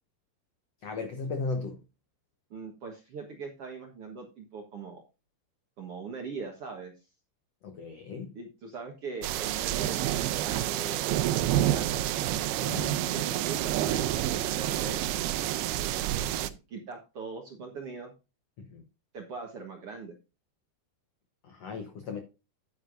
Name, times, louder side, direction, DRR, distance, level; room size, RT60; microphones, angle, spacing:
voice 1, 0.8-1.8 7.6-8.3 12.6-13.0 16.0-16.3 18.6-18.8 21.4-22.2, left 4 dB, 75° left, 1.5 m, -36 dB
voice 2, 2.5-5.0 5.8-6.9 8.3-11.9 12.9-14.1 14.3-15.1 16.0-18.1 19.1-20.1, right 4 dB, 60° right, 1.6 m, -41 dB
sound 1, 9.2-16.5, right 13 dB, 90° right, 2.6 m, -28 dB
10.0 x 9.6 x 2.6 m
omnidirectional pair, 4.5 m